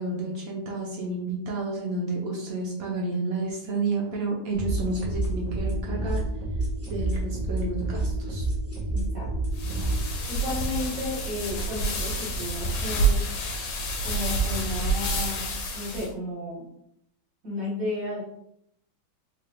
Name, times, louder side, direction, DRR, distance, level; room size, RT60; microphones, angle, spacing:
voice 1, 0.0-6.2 6.9-8.5, right 2 dB, 70° right, -2 dB, 0.8 m, -30 dB
sound 1, 4.5-10.0, right 2 dB, 20° right, 0.4 m, -29 dB
voice 2, 8.9-9.3 10.3-13.3 14.0-15.4 15.7-16.6 17.4-18.2, left 2 dB, 45° right, -7 dB, 1.8 m, -33 dB
sound 2, 9.5-16.1, right 2 dB, 80° left, 1.5 m, -28 dB
3.8 x 2.5 x 3.4 m, 0.74 s
omnidirectional pair, 2.2 m